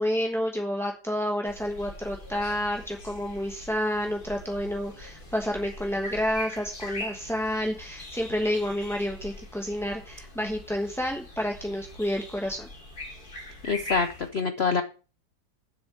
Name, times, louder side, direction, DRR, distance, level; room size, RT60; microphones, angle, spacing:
voice 1, 0.0-12.7, equal, ahead, 1 dB, 0.8 m, -29 dB
sound 1, 1.5-14.3, left 1 dB, 25° left, 2.7 m, -42 dB
voice 2, 13.6-14.8, left 5 dB, 85° left, 9 dB, 0.5 m, -26 dB
7.8 x 6.4 x 7.1 m, 0.36 s
omnidirectional pair, 2.1 m